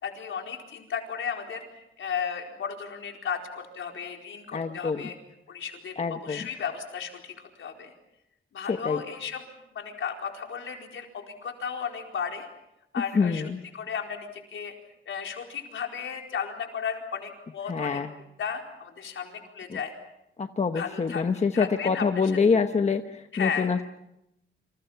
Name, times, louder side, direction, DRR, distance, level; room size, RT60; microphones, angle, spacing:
voice 1, 0.0-1.6 2.0-5.2 5.5-7.9 8.5-9.4 9.7-12.5 12.9-13.4 13.7-14.7 15.1-18.0 18.4-19.9 20.7-21.2 21.5-22.2 23.3-23.7, left 7 dB, 75° left, 2 dB, 4.5 m, -34 dB
voice 2, 4.5-5.1 6.0-6.4 8.7-9.0 13.1-13.6 17.7-18.1 19.7-19.8 20.4-23.9, left 5 dB, 35° left, 6 dB, 1.1 m, -26 dB
29.0 x 27.0 x 5.8 m, 0.85 s
wide cardioid pair, 145°, 20 cm